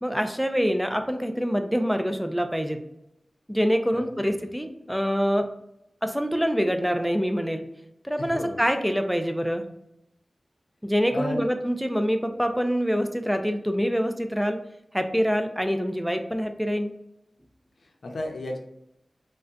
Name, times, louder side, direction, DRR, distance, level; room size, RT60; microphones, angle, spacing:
voice 1, 0.0-2.8 3.5-5.5 6.0-7.6 8.0-9.6 10.8-14.6 14.9-16.9, equal, ahead, 6 dB, 0.3 m, -25 dB
voice 2, 3.9-4.4 8.2-8.6 11.1-11.5 17.8-18.6, left 1 dB, 70° left, 2 dB, 0.6 m, -34 dB
3.7 x 2.2 x 2.4 m, 0.83 s
wide cardioid pair, 90°, 0 cm